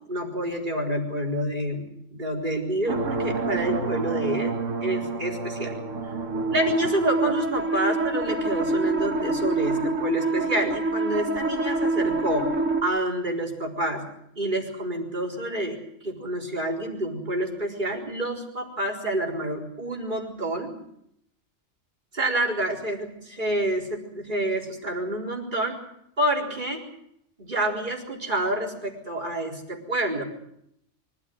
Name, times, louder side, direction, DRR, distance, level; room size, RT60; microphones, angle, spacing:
voice 1, 0.1-4.5 4.8-5.8 6.5-12.5 12.8-14.0 14.4-20.7 22.1-25.8 26.2-26.8 27.4-30.2, right 1 dB, 40° right, -1 dB, 4.4 m, -28 dB
sound 1, 2.9-12.8, right 3 dB, 80° right, 1.7 m, -27 dB
24.5 x 14.0 x 9.4 m, 0.75 s
omnidirectional pair, 1.3 m